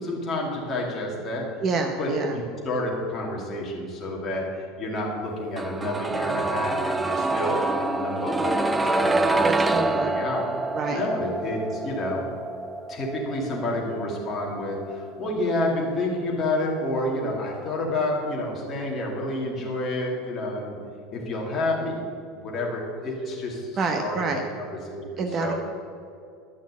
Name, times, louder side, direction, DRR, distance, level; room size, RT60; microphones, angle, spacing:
voice 1, 0.0-1.5 2.0-10.4 10.9-12.2 12.9-20.8 21.1-22.0 22.3-25.5, left 1 dB, 20° left, -3 dB, 2.5 m, -29 dB
voice 2, 1.6-2.3 9.4-10.1 10.7-11.1 23.8-24.4 25.2-25.5, right 4 dB, 25° right, 5 dB, 0.7 m, -27 dB
sound 1, 5.6-17.4 17.7-17.8, right 2 dB, 10° right, 0.3 m, -27 dB
12.0 x 6.3 x 8.3 m, 2.4 s
cardioid pair, 170°, 0 cm